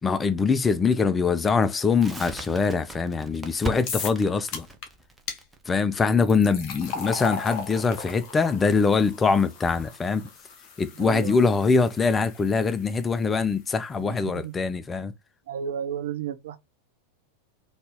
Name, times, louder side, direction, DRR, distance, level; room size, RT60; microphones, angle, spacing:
voice 1, 0.0-4.7 5.7-10.3 10.8-15.1, left 4 dB, 15° left, 0.4 m, -23 dB
Crackle, 2.0-8.8, equal, 10° right, 0.8 m, -40 dB
sound 1, 3.9-4.2 4.5-4.9 5.3-5.4 6.1-13.2, left 5 dB, 40° left, 1.3 m, -37 dB
voice 2, 10.9-11.7 14.0-14.5 15.5-16.6, right 8 dB, 60° right, 0.7 m, -33 dB
3.9 x 2.9 x 3.5 m
figure-of-eight pair, 90°, 0 cm